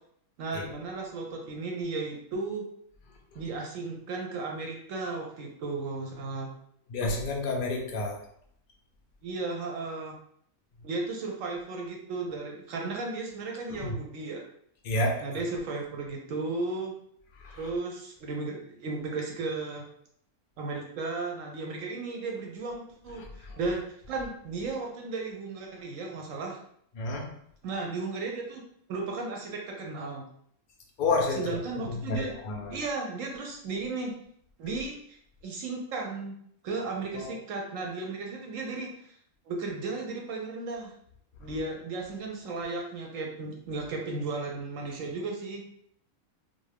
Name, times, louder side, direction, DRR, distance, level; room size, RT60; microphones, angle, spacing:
voice 1, 0.4-2.7 3.3-6.5 9.2-10.2 10.8-14.4 15.2-16.9 17.5-19.8 20.6-26.6 27.6-30.3 31.3-32.3 32.7-34.1 34.6-35.2 35.4-36.4 36.6-39.2 39.5-40.9 41.4-45.6, right 3 dB, 70° right, 0 dB, 0.9 m, -35 dB
voice 2, 6.9-8.1 13.8-13.9 14.8-15.2 17.4-17.6 27.0-27.2 31.0-31.4 32.2-32.8 37.2-37.3, left 2 dB, 70° left, 0 dB, 0.4 m, -29 dB
2.6 x 2.2 x 3.2 m, 0.67 s
omnidirectional pair, 1.5 m